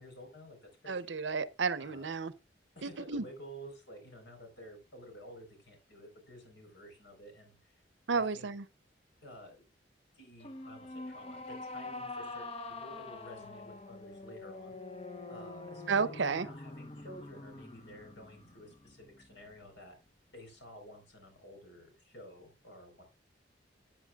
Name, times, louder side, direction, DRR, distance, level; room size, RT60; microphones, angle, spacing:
voice 1, 0.0-1.1 1.8-2.1 2.7-7.7 8.1-8.5 9.2-9.6 10.1-12.5 12.8-14.8 15.3-19.9 20.3-23.0, equal, 70° left, 4.3 m, -52 dB
voice 2, 0.9-2.3 3.1-3.2 8.1-8.6 15.9-16.5, right 5 dB, 75° right, 0.7 m, -31 dB
sound 1, 10.4-19.8, left 2 dB, 30° left, 0.8 m, -45 dB
12.5 x 9.0 x 2.4 m
head